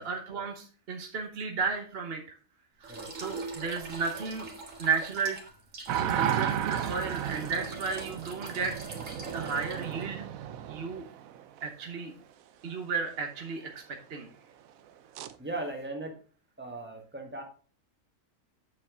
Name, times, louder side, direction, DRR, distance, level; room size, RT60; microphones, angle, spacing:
voice 1, 0.0-2.2 2.8-4.5 4.8-5.4 6.0-8.7 9.2-10.2 10.7-11.1 11.6-12.1 12.6-14.3, right 5 dB, 50° right, 3 dB, 1.2 m, -33 dB
sound 1, 2.8-10.0, right 3 dB, 65° right, 2.2 m, -42 dB
sound 2, 5.9-11.7 15.2-15.3, right 10 dB, 85° right, 1.1 m, -33 dB
voice 2, 15.4-16.2 16.6-17.4, right 2 dB, 10° right, 2 dB, 1.6 m, -38 dB
8.7 x 7.1 x 3.8 m, 0.40 s
omnidirectional pair, 1.4 m